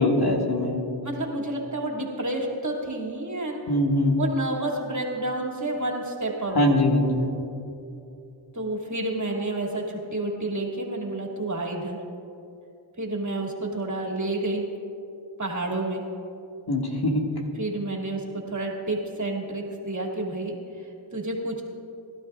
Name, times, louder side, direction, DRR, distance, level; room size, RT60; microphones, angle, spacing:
voice 1, 0.0-0.9 3.7-4.2 6.5-7.3 16.7-17.3, left 1 dB, 50° left, -1 dB, 2.1 m, -22 dB
voice 2, 1.0-3.6 4.2-6.7 8.5-12.0 13.0-14.7 15.4-16.0 17.6-21.6, right 2 dB, 35° right, -1 dB, 2.7 m, -30 dB
21.5 x 12.5 x 2.5 m, 2.7 s
cardioid pair, 50°, 49 cm